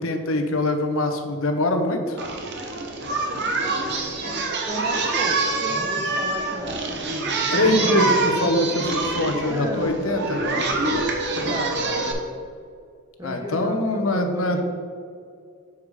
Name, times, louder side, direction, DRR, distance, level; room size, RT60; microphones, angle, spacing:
voice 1, 0.0-2.2 7.5-10.4 13.2-14.6, left 1 dB, 70° left, 6 dB, 0.8 m, -23 dB
Singing, 2.2-12.1, right 3 dB, 55° right, 0.9 m, -25 dB
voice 2, 4.7-8.5 9.5-9.9 10.5-10.7 11.4-12.0 13.2-14.6, right 1 dB, 15° right, 2 dB, 0.8 m, -34 dB
6.9 x 4.8 x 4.9 m, 2.2 s
head